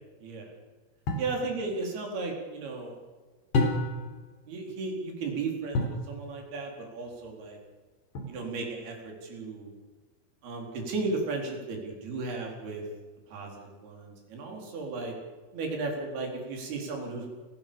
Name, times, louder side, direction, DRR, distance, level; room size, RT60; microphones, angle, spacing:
sound 1, 1.1-1.4 3.5-4.2 5.7-6.1 8.1-8.7, left 2 dB, 90° left, 5.7 m, -28 dB
voice 1, 1.2-3.0 4.5-7.6 8.3-9.7 10.4-12.8 13.3-15.1 15.5-17.2, right 3 dB, 70° right, 1 dB, 6.3 m, -35 dB
29.5 x 16.0 x 7.1 m, 1.4 s
omnidirectional pair, 4.7 m